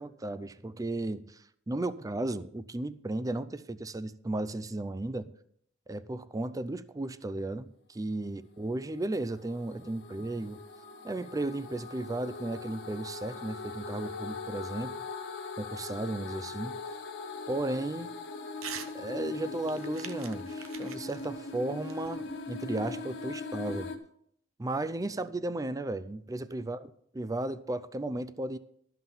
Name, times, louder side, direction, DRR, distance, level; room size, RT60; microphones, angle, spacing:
voice 1, 0.0-5.3 5.9-10.6 11.0-14.9 15.6-16.8 17.5-18.1 18.9-23.9 24.6-26.9 27.1-28.6, right 2 dB, 15° right, 0.4 m, -35 dB
sound 1, 8.8-24.0, left 3 dB, 60° left, 1.4 m, -40 dB
Crumpling crinkling / Tearing, 18.6-18.9 19.3-22.6, right 7 dB, 90° right, 0.9 m, -45 dB
12.5 x 5.9 x 7.2 m
head